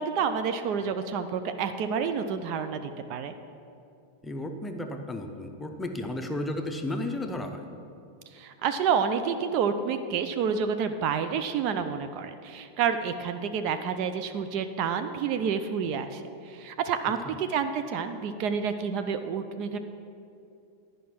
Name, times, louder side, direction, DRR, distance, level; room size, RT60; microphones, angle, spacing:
voice 1, 0.0-3.3 8.3-19.8, right 6 dB, 40° right, 9 dB, 0.4 m, -29 dB
voice 2, 4.2-7.7 17.2-17.3, left 1 dB, 10° left, 4 dB, 0.7 m, -33 dB
11.0 x 5.1 x 5.8 m, 2.6 s
figure-of-eight pair, 90°, 0 cm